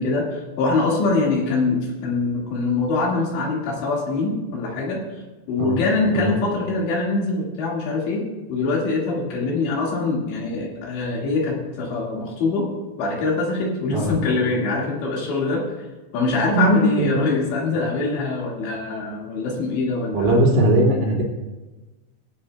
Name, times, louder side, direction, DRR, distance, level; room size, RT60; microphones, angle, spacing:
voice 1, 0.0-5.0 5.5-12.7 13.0-15.9 16.1-20.5, left 3 dB, 80° left, -2 dB, 4.3 m, -23 dB
voice 2, 20.1-21.2, right 1 dB, 60° right, -4 dB, 4.2 m, -19 dB
19.5 x 9.4 x 2.3 m, 1.2 s
omnidirectional pair, 5.1 m